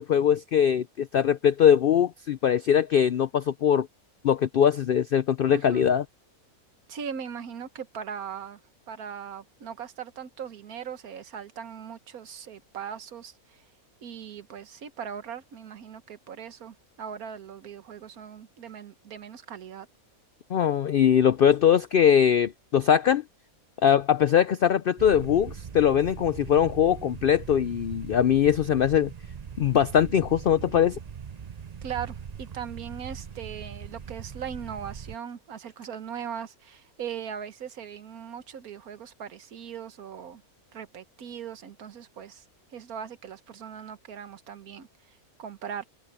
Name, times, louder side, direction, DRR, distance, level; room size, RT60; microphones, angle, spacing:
voice 1, 0.0-3.9 4.2-6.0 20.5-23.2 23.8-29.1 29.6-31.0, left 9 dB, 75° left, 0.5 m, -21 dB
voice 2, 5.5-5.9 6.9-8.6 8.9-13.6 14.0-19.9 31.8-40.4 40.7-42.5 42.7-44.9 45.4-45.9, right 8 dB, 80° right, 1.6 m, -39 dB
sound 1, 25.0-35.2, right 7 dB, 40° right, 0.6 m, -41 dB
omnidirectional pair, 1.5 m